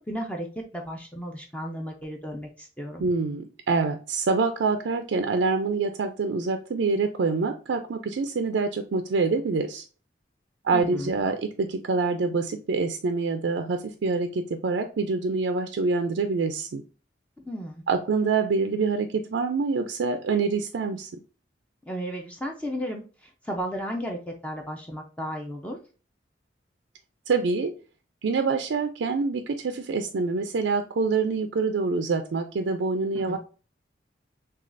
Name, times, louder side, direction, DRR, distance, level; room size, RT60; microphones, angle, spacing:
voice 1, 0.1-3.0 10.7-11.1 17.5-17.8 21.9-25.8 33.1-33.4, equal, 5° left, 1 dB, 0.5 m, -34 dB
voice 2, 3.0-9.8 10.6-16.8 17.9-21.1 27.3-27.7 28.2-33.4, right 4 dB, 80° right, 6 dB, 0.4 m, -26 dB
6.3 x 2.3 x 2.5 m, 0.36 s
head